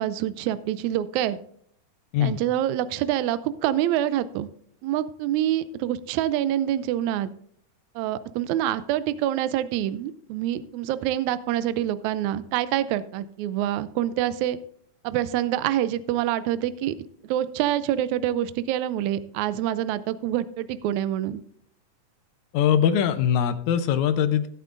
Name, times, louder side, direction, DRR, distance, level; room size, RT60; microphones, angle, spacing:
voice 1, 0.0-1.4 2.2-4.5 4.8-7.3 8.0-14.6 15.0-17.0 17.2-21.4, right 12 dB, 80° right, 15 dB, 1.8 m, -26 dB
voice 2, 22.5-24.5, left 9 dB, 75° left, 10 dB, 1.9 m, -22 dB
17.0 x 8.2 x 2.6 m, 0.65 s
omnidirectional pair, 3.7 m